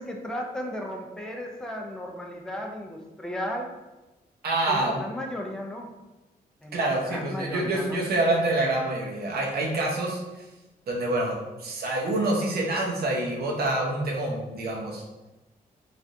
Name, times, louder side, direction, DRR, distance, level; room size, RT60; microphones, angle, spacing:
voice 1, 0.0-3.7 4.7-5.9 6.6-6.8 7.1-8.0, equal, 5° left, 1 dB, 0.4 m, -35 dB
voice 2, 4.4-5.0 6.7-10.2 10.9-15.0, right 2 dB, 75° right, -1 dB, 0.7 m, -26 dB
3.2 x 2.4 x 2.6 m, 1.1 s
wide cardioid pair, 125°, 16 cm